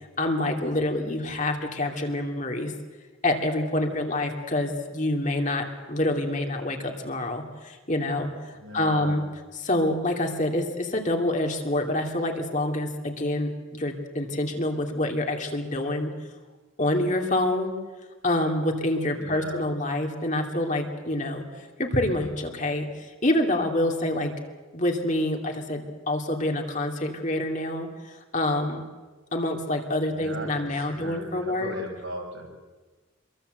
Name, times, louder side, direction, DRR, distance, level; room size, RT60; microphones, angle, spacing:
voice 1, 0.2-2.7 3.2-7.4 7.9-8.3 8.7-9.2 9.6-13.5 13.8-16.1 16.8-17.7 18.2-21.4 21.8-22.9 23.2-24.3 24.7-25.8 26.1-27.9 28.3-28.8 29.3-31.7, left 1 dB, 35° left, 3 dB, 2.8 m, -26 dB
voice 2, 8.5-9.2 19.2-19.7 30.1-32.5, right 1 dB, 70° right, 0 dB, 6.8 m, -38 dB
27.0 x 23.0 x 8.1 m, 1.3 s
head